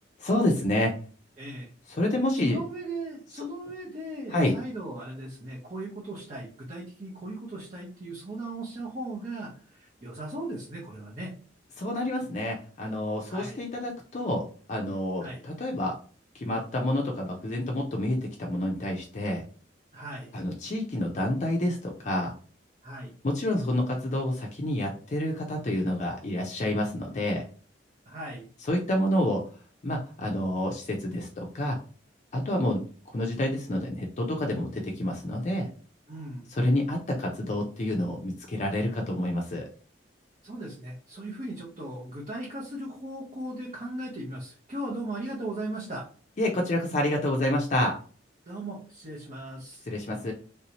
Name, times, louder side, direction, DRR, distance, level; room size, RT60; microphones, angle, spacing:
voice 1, 0.2-0.9 2.0-2.6 4.3-4.6 11.8-15.9 16.3-19.4 20.3-22.3 23.2-27.4 28.7-29.4 29.8-31.8 32.3-32.8 33.1-35.7 36.5-39.6 46.4-48.0 49.9-50.3, left 1 dB, 40° left, 1 dB, 0.5 m, -28 dB
voice 2, 1.4-1.7 2.3-11.3 13.3-13.6 15.2-15.4 19.9-20.3 22.8-23.1 28.1-28.5 36.1-36.5 40.4-46.1 48.5-49.9, right 1 dB, 40° right, -4 dB, 0.8 m, -37 dB
3.4 x 2.7 x 2.9 m, 0.42 s
head